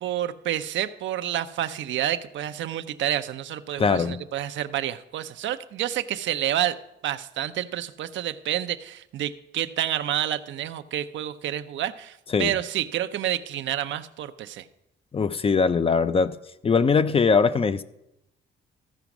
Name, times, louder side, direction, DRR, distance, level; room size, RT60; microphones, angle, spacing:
voice 1, 0.0-6.8 7.0-14.7, right 12 dB, 70° right, 0.6 m, -29 dB
voice 2, 3.8-4.2 12.3-12.5 15.1-16.4 16.6-17.8, left 5 dB, 30° left, 0.4 m, -21 dB
14.5 x 5.1 x 5.9 m
cardioid pair, 90°, 20 cm